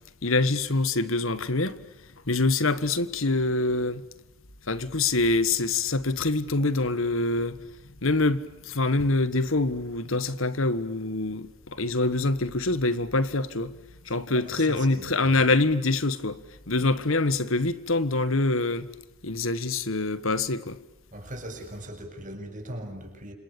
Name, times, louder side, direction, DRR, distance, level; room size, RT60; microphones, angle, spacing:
voice 1, 0.2-1.8 2.3-4.0 4.6-7.6 8.0-13.8 14.1-18.9 19.2-20.8, left 2 dB, 70° left, 1.6 m, -25 dB
voice 2, 14.4-15.4 21.1-23.3, right 1 dB, 35° right, 7.1 m, -39 dB
29.5 x 27.5 x 7.1 m
head